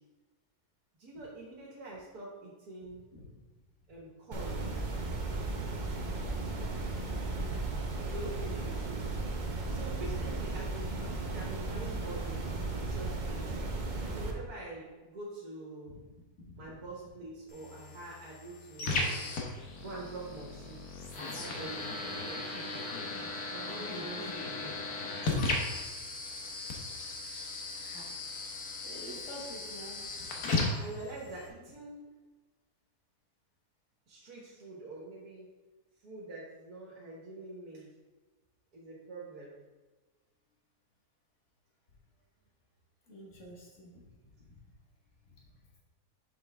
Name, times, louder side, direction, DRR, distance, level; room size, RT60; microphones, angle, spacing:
voice 1, 1.0-3.1 3.9-4.5 8.0-9.1 9.7-12.4 12.7-13.6 14.1-16.0 16.6-19.3 19.8-20.8 21.1-22.7 23.5-24.7 30.8-32.1 34.1-35.5 36.0-37.9 38.7-39.6, right 2 dB, 70° right, -4 dB, 1.8 m, -45 dB
sound 1, 4.3-14.3, right 2 dB, 45° right, 0.6 m, -35 dB
sound 2, 17.5-31.5, left 3 dB, 70° left, 1.5 m, -36 dB
voice 2, 28.8-30.4 43.1-44.0, equal, 50° left, -3 dB, 1.9 m, -48 dB
6.7 x 5.5 x 3.5 m, 1.3 s
omnidirectional pair, 1.7 m